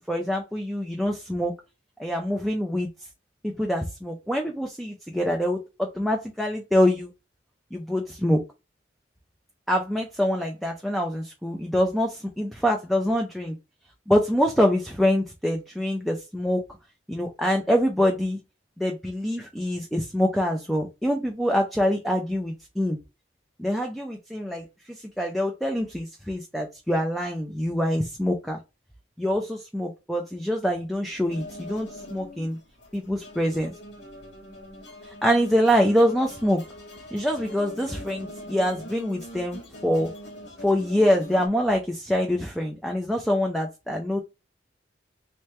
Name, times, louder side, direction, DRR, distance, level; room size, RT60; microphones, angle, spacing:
voice 1, 0.1-1.5 2.0-2.9 3.4-7.1 7.7-8.4 9.7-13.6 14.1-16.6 17.1-18.4 18.8-23.0 23.6-28.6 29.2-32.6 32.9-33.7 35.0-36.6 37.1-40.1 40.6-44.2, equal, ahead, 1 dB, 0.5 m, -25 dB
sound 1, 31.2-41.5, left 1 dB, 80° left, 1.5 m, -42 dB
3.3 x 3.1 x 3.1 m, 0.26 s
head